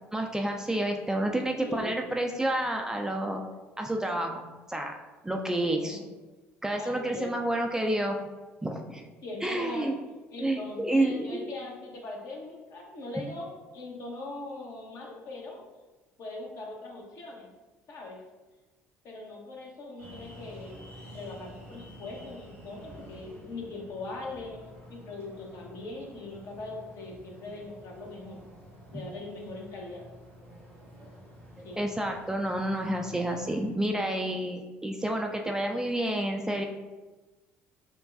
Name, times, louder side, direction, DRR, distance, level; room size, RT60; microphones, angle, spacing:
voice 1, 0.1-3.4 3.8-4.4 4.7-4.9 5.2-6.0 6.6-8.2 8.6-9.0 9.4-9.9 10.4-11.5 31.7-36.7, right 1 dB, 10° right, 2 dB, 0.4 m, -29 dB
voice 2, 1.6-2.0 5.8-6.1 6.8-7.3 9.2-9.9 10.3-15.6 16.2-17.5 17.9-18.2 19.0-24.6 24.9-28.4 28.9-30.0 31.6-31.8, left 2 dB, 50° left, -1 dB, 0.9 m, -41 dB
sound 1, 20.0-33.7, equal, 90° right, 1.3 m, -49 dB
6.3 x 2.2 x 2.5 m, 1.2 s
figure-of-eight pair, 55°, 7 cm